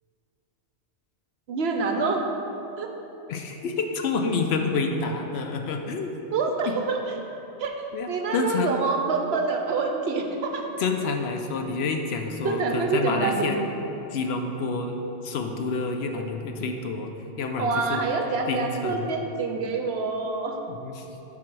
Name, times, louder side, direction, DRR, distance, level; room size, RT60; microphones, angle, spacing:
voice 1, 1.5-2.3 2.8-2.9 6.3-7.1 7.6-10.6 12.4-13.6 17.6-20.6, right 4 dB, 65° right, 3 dB, 0.8 m, -26 dB
voice 2, 3.3-6.1 6.7-6.8 7.9-8.7 10.8-13.6 14.1-15.0 15.2-17.1 17.4-18.0 18.5-19.1 20.7-21.1, left 4 dB, 70° left, 4 dB, 0.8 m, -28 dB
7.4 x 3.9 x 6.1 m, 3.0 s
omnidirectional pair, 1.2 m